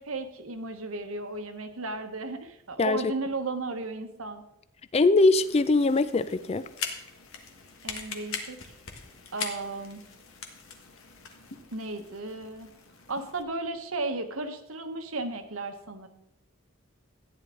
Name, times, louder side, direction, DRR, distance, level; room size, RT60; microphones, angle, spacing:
voice 1, 0.0-4.4 7.8-8.6 9.3-10.0 11.7-12.7 13.1-16.1, right 3 dB, 80° right, 8 dB, 1.2 m, -34 dB
voice 2, 2.8-3.1 4.9-6.6, left 3 dB, 30° left, 14 dB, 0.4 m, -22 dB
sound 1, 5.3-13.4, left 6 dB, 80° left, 1.5 m, -41 dB
14.0 x 9.8 x 3.8 m, 0.81 s
head